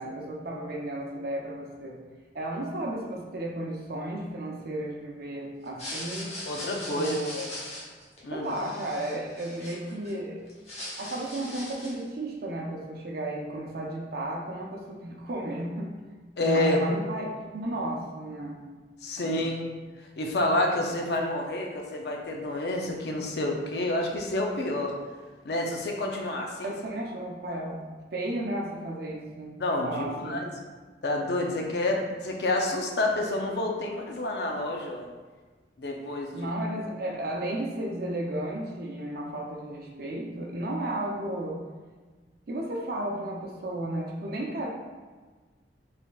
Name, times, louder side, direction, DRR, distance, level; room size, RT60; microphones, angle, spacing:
voice 1, 0.0-2.0 2.3-6.3 6.8-7.4 8.3-10.4 11.0-16.0 16.4-18.6 19.2-19.4 26.6-30.5 36.3-41.6 42.5-44.7, right 1 dB, 60° right, -1 dB, 0.6 m, -33 dB
sound 1, 5.7-10.1 10.5-12.1, left 1 dB, 40° left, 1.0 m, -40 dB
voice 2, 6.5-7.5 8.2-8.5 16.4-16.8 19.0-19.6 20.2-24.9 25.4-26.7 29.6-30.5 31.0-35.1 35.8-36.5, left 1 dB, 65° left, 1 dB, 0.6 m, -29 dB
4.2 x 3.4 x 2.3 m, 1.4 s
head